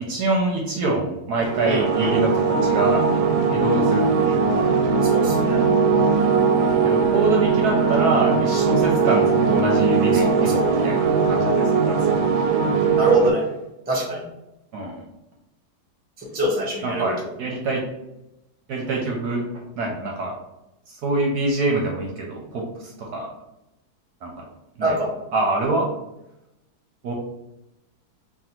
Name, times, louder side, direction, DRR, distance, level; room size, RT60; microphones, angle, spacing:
voice 1, 0.0-3.1 3.5-4.7 6.8-11.0 11.2-12.0 14.7-15.0 16.8-17.9 18.7-20.4 21.0-23.3 24.2-24.4 24.8-25.0 25.3-25.9 27.0-27.1, right 2 dB, 70° right, -1 dB, 1.0 m, -25 dB
sound 1, 1.4-13.3, right 5 dB, 85° right, 1.3 m, -20 dB
voice 2, 1.7-2.2 5.0-5.6 10.1-10.8 13.0-13.5 13.9-14.2 16.2-17.1 24.8-25.1, equal, 10° right, -3 dB, 0.4 m, -25 dB
3.4 x 2.4 x 4.3 m, 0.90 s
omnidirectional pair, 2.1 m